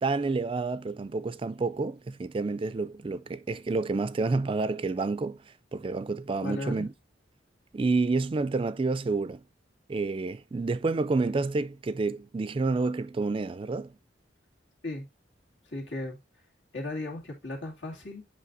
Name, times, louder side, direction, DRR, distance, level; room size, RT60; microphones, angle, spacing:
voice 1, 0.0-5.4 5.7-6.9 7.7-9.4 9.9-13.9, right 3 dB, 30° right, 0.3 m, -29 dB
voice 2, 6.4-6.9 14.8-15.1 15.6-16.2 16.7-18.3, left 1 dB, 85° left, 2.5 m, -36 dB
8.3 x 5.5 x 2.6 m
head